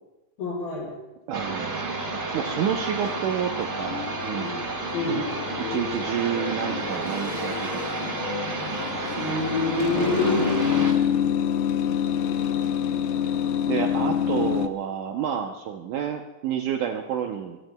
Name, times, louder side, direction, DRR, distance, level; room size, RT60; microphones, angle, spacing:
voice 1, 0.4-0.9 4.9-5.2 9.2-10.5, left 3 dB, 75° left, -4 dB, 7.0 m, -26 dB
sound 1, 1.3-10.9, right 3 dB, 60° right, 0.7 m, -31 dB
voice 2, 1.3-4.8 5.6-8.1 9.9-10.5 13.7-17.6, right 8 dB, 75° right, 4 dB, 1.9 m, -30 dB
sound 2, 3.0-14.7, left 9 dB, 90° left, 2.7 m, -28 dB
24.0 x 19.0 x 2.2 m, 1.1 s
omnidirectional pair, 4.3 m